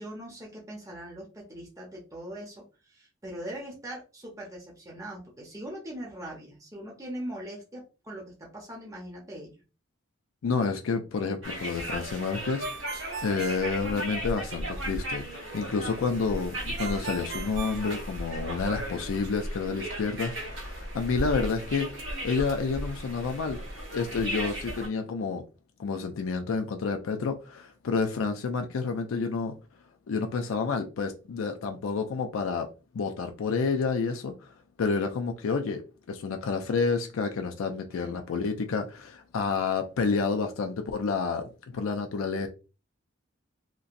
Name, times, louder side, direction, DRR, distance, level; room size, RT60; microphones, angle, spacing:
voice 1, 0.0-9.6 37.9-38.3, right 1 dB, 15° right, 0.7 m, -41 dB
voice 2, 10.4-13.0 13.2-21.9 22.2-23.6 23.9-25.4 25.8-29.5 30.1-32.7 32.9-34.5 34.8-35.8 36.1-42.5, left 4 dB, 90° left, 0.4 m, -29 dB
sound 1, 11.4-24.9, right 1 dB, 80° right, 1.2 m, -36 dB
Ringtone, 12.6-14.5 16.8-18.7, right 5 dB, 55° right, 0.3 m, -39 dB
2.9 x 2.6 x 2.5 m
head